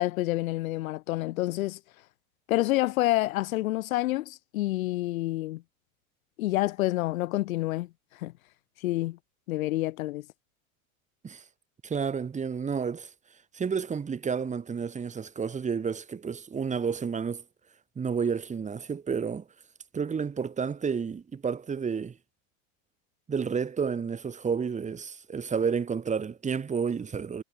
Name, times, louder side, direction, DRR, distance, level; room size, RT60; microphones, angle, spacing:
voice 1, 0.0-1.8 2.5-5.6 6.4-7.9 8.2-8.3 8.8-9.2 9.5-10.3, left 17 dB, 85° left, 2.2 m, -28 dB
voice 2, 11.8-13.1 13.5-17.4 18.0-19.4 19.9-22.2 23.3-27.4, right 6 dB, 15° right, 5.2 m, -30 dB
supercardioid pair, 145°, 40 cm